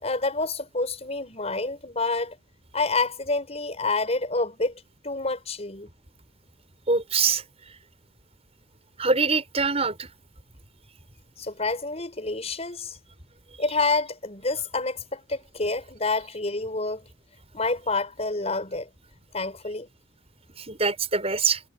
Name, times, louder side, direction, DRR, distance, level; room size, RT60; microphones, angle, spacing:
voice 1, 0.0-2.4 2.7-4.7 5.0-5.9 11.4-13.0 13.6-17.0 17.5-18.9 19.3-19.9, left 3 dB, 35° left, 5.8 m, -28 dB
voice 2, 6.9-7.4 9.0-10.1 20.6-21.6, right 4 dB, 35° right, 6.7 m, -24 dB
head